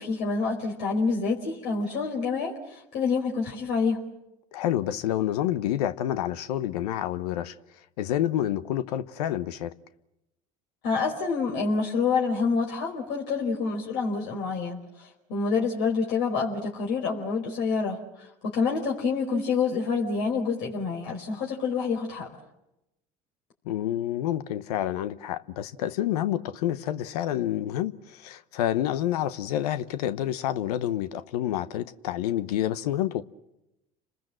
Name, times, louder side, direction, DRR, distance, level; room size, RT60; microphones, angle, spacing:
voice 1, 0.0-4.0 10.8-22.3, left 4 dB, 65° left, 4.7 m, -27 dB
voice 2, 4.5-7.5 8.0-9.7 23.7-33.2, left 12 dB, 85° left, 0.9 m, -28 dB
29.5 x 20.5 x 7.7 m
supercardioid pair, 85°, 19 cm